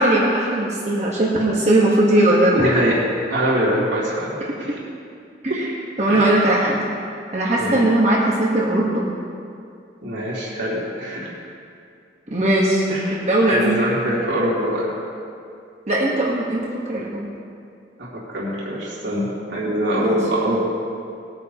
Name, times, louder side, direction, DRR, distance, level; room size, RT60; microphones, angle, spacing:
voice 1, 0.0-2.7 4.7-4.8 5.4-5.7 6.0-6.8 7.3-9.0 12.3-12.8 13.1-13.8 15.9-17.3 20.0-20.1, right 1 dB, 35° right, -4 dB, 1.3 m, -19 dB
voice 2, 2.5-3.0 3.3-4.8 5.5-5.6 6.1-6.5 7.6-7.9 10.0-11.3 12.9-14.9 18.0-20.6, equal, 75° right, -7 dB, 2.7 m, -23 dB
20.5 x 9.6 x 3.0 m, 2.4 s
head